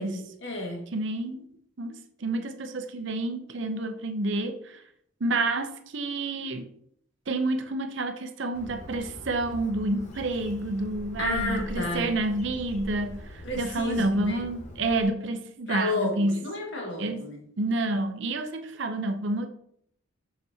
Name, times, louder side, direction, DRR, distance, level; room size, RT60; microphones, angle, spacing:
voice 1, 0.0-0.8 11.2-12.1 13.4-14.5 15.7-17.4, left 2 dB, 60° left, 0 dB, 1.8 m, -31 dB
voice 2, 0.9-1.5 1.8-4.8 5.2-6.6 7.3-16.4 17.0-17.2 17.6-19.5, right 2 dB, 60° right, 7 dB, 0.6 m, -29 dB
Bird, 8.5-15.0, equal, 35° left, 1.1 m, -42 dB
7.0 x 6.0 x 2.8 m, 0.67 s
head